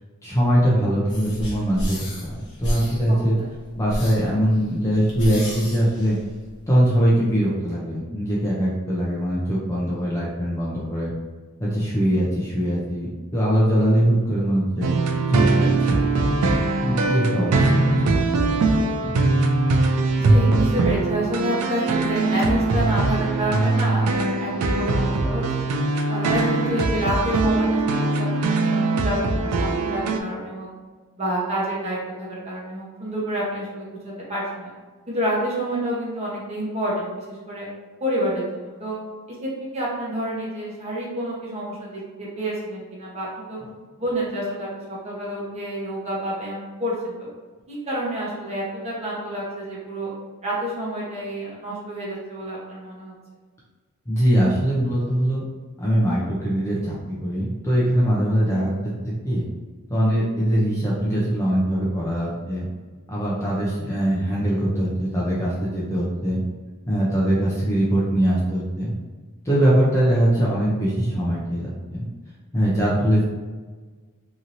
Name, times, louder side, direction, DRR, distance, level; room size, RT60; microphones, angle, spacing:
voice 1, 0.2-3.4 3.8-6.2 6.7-11.1 11.6-14.9 15.3-16.3 16.8-18.2 18.5-19.2 54.1-55.4 55.8-58.9 59.2-59.4 59.9-62.6 63.1-66.4 66.9-68.9 69.4-72.0 72.5-73.2, equal, 15° left, -7 dB, 0.5 m, -22 dB
sound 1, 1.1-6.7, equal, 50° left, 0.9 m, -32 dB
voice 2, 3.1-3.4 20.2-25.7 26.1-30.7 31.2-34.7 35.1-37.7 38.0-39.0 39.4-43.6 44.0-47.3 47.7-50.1 50.4-53.1, right 1 dB, 30° right, -6 dB, 0.9 m, -28 dB
sound 2, 14.8-30.2, right 3 dB, 90° right, 0.4 m, -21 dB
2.9 x 2.7 x 2.6 m, 1.4 s
head